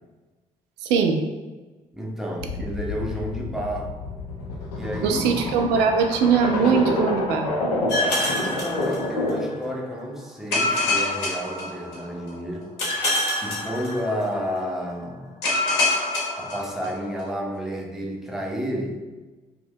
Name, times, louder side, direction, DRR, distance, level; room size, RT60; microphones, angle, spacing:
voice 1, 0.8-1.2 5.0-7.5, right 6 dB, 60° right, 4 dB, 0.4 m, -21 dB
voice 2, 1.9-4.0 4.7-5.3 8.3-12.8 13.4-15.3 16.4-19.0, equal, ahead, -2 dB, 0.6 m, -31 dB
sound 1, 2.4-9.6, left 2 dB, 80° left, 0.4 m, -28 dB
sound 2, 7.9-9.5 10.5-12.2 12.8-14.4 15.4-17.2, left 2 dB, 60° left, 0.8 m, -26 dB
2.6 x 2.2 x 3.4 m, 1.2 s
figure-of-eight pair, 40°, 20 cm